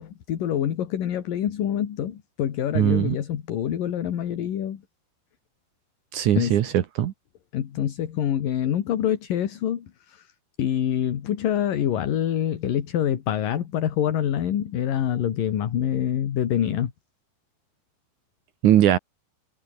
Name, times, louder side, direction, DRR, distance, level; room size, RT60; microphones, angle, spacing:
voice 1, 0.0-4.8 6.4-6.6 7.5-10.3 10.6-16.9, left 10 dB, 55° left, 3.3 m, -26 dB
voice 2, 2.8-3.2 6.1-7.1 18.6-19.0, right 11 dB, 70° right, 1.9 m, -20 dB
omnidirectional pair, 5.2 m